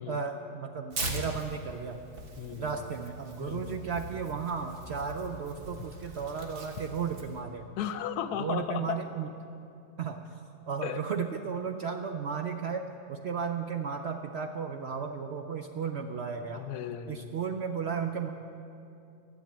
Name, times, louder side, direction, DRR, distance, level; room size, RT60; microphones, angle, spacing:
voice 1, 0.1-2.0 2.6-7.7 8.4-9.3 10.0-10.2 10.7-12.8 13.1-16.7 17.1-18.3, right 6 dB, 65° right, 5 dB, 0.6 m, -34 dB
Tearing, 0.9-7.4, right 2 dB, 40° right, 1.3 m, -41 dB
voice 2, 2.4-2.9 3.4-3.8 7.8-9.0 10.8-11.0 16.5-17.3, left 9 dB, 85° left, 11 dB, 1.2 m, -35 dB
12.5 x 7.2 x 8.8 m, 2.7 s
omnidirectional pair, 1.6 m